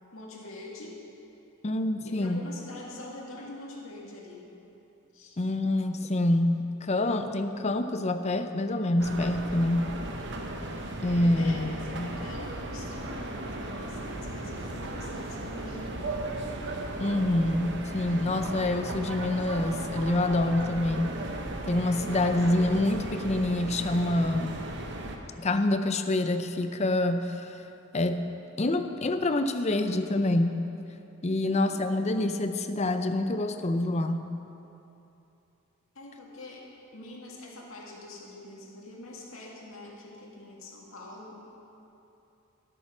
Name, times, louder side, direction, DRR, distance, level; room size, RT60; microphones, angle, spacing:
voice 1, 0.1-1.0 2.0-4.5 5.1-5.4 11.4-16.3 31.4-32.0 35.9-36.7 36.9-41.5, left 2 dB, 70° left, -2 dB, 2.1 m, -44 dB
voice 2, 1.6-2.5 5.4-9.9 11.0-12.1 17.0-21.2 21.7-24.6 25.4-27.6 27.9-28.2 28.6-30.7 31.2-34.3, left 1 dB, 30° left, 8 dB, 0.6 m, -26 dB
sound 1, 9.0-25.2, right 1 dB, 55° right, 1.0 m, -36 dB
12.5 x 8.7 x 6.1 m, 2.9 s
head